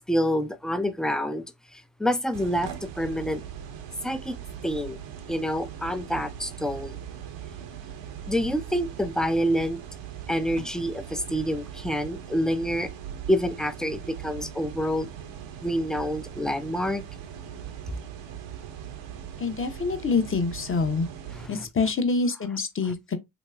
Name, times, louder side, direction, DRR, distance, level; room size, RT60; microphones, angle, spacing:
voice 1, 0.1-1.4 1.7-2.7 3.0-3.4 4.0-5.0 5.3-7.0 8.3-9.8 10.3-12.9 13.3-15.1 15.6-17.0 21.3-21.5, equal, ahead, 0.3 m, -27 dB
sound 1, 2.3-21.5, right 9 dB, 75° right, 0.7 m, -40 dB
voice 2, 19.4-21.1 21.5-23.2, left 4 dB, 30° left, 0.8 m, -26 dB
3.1 x 2.9 x 2.3 m
supercardioid pair, 50°, 45 cm